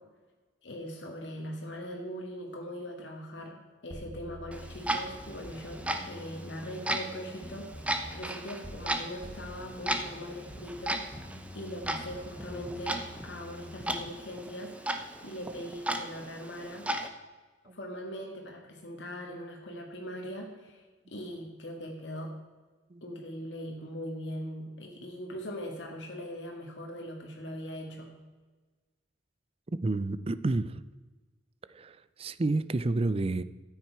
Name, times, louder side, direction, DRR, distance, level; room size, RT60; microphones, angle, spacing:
voice 1, 0.6-3.6 3.8-11.0 11.5-13.0 13.2-16.9 17.7-20.8 21.1-22.3 23.0-28.1, equal, 65° left, 1.8 m, -41 dB
sound 1, 3.9-9.0 9.2-14.0, left 1 dB, 15° left, 1.3 m, -47 dB
Clock, 4.5-17.1, right 1 dB, 5° right, 0.8 m, -36 dB
voice 2, 29.8-30.8 31.7-33.4, right 2 dB, 30° right, 0.4 m, -30 dB
13.5 x 9.2 x 4.7 m
head